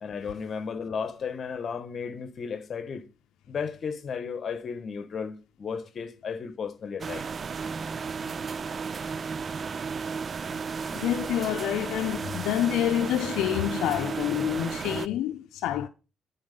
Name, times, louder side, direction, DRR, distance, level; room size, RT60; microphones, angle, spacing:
voice 1, 0.0-3.0 3.5-7.3, left 6 dB, 50° left, 1.2 m, -34 dB
sound 1, 7.0-15.1, right 5 dB, 45° right, 0.3 m, -34 dB
voice 2, 10.9-15.9, left 11 dB, 90° left, 0.6 m, -27 dB
10.5 x 4.2 x 5.2 m
cardioid pair, 90°, 0 cm